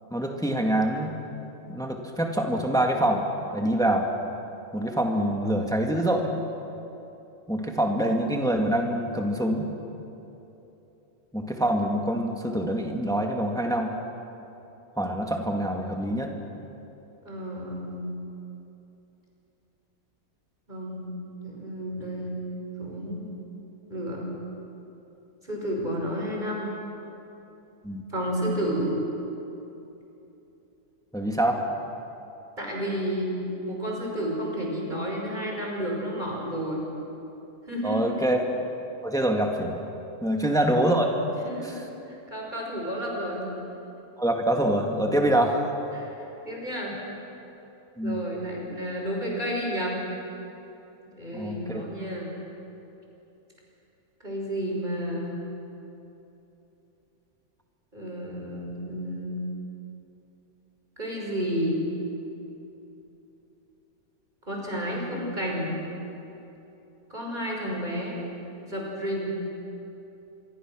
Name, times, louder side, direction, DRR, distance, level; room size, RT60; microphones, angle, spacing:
voice 1, 0.1-1.1 1.7-3.2 3.5-4.1 4.7-6.3 7.5-9.7 11.3-13.9 15.0-16.3 27.8-28.0 31.1-31.6 37.8-38.4 39.0-39.8 40.2-41.1 44.2-45.6 48.0-48.2 51.3-51.8, right 1 dB, ahead, 2 dB, 1.9 m, -25 dB
voice 2, 17.2-18.1 20.7-21.1 21.4-22.4 22.8-23.4 23.9-24.3 25.4-26.7 28.1-29.0 32.6-36.9 37.7-38.2 40.3-40.4 41.4-41.8 42.1-43.5 45.9-47.0 48.0-50.0 51.1-52.3 54.2-55.4 57.9-59.5 61.0-61.9 64.5-65.8 67.1-68.2 68.6-69.3, equal, 30° right, -2 dB, 5.9 m, -31 dB
26.5 x 23.5 x 6.3 m, 3.0 s
omnidirectional pair, 1.6 m